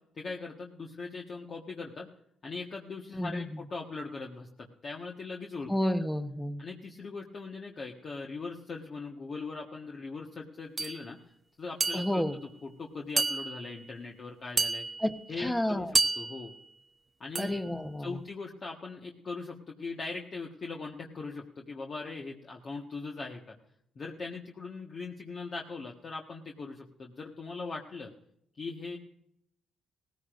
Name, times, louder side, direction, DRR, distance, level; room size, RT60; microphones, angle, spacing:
voice 1, 0.1-2.1 2.4-5.7 6.6-11.2 11.6-12.2 12.6-14.8 15.3-15.9 16.2-16.5 17.2-17.6 18.0-23.5 23.9-28.1 28.6-29.0, left 4 dB, 45° left, -1 dB, 1.4 m, -40 dB
voice 2, 3.1-3.5 5.7-6.6 11.9-12.4 15.0-15.9 17.4-18.2, left 1 dB, 5° left, 9 dB, 1.0 m, -31 dB
sound 1, 10.8-11.0 11.8-12.4 13.2-13.8 14.6-15.2 15.9-16.6 17.3-17.7, right 3 dB, 30° right, 0.6 m, -30 dB
18.0 x 15.0 x 2.6 m, 0.73 s
cardioid pair, 90°, 0 cm